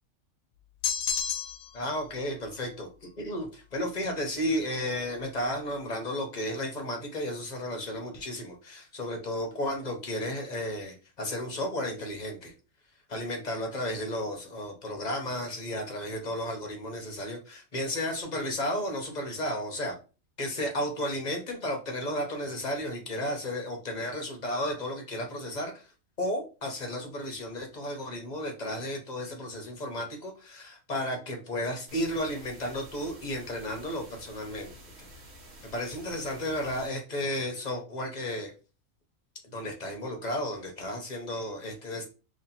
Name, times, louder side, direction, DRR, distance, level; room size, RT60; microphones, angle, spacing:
sound 1, 0.8-1.8, left 8 dB, 85° left, 1.0 m, -30 dB
voice 1, 1.7-12.5 13.1-20.0 20.4-25.9 26.2-34.7 35.6-38.5 39.4-42.1, left 1 dB, 40° left, 3 dB, 0.8 m, -33 dB
sound 2, 31.9-36.9, equal, 65° right, 1.5 m, -50 dB
3.1 x 2.8 x 4.1 m, 0.34 s
omnidirectional pair, 1.4 m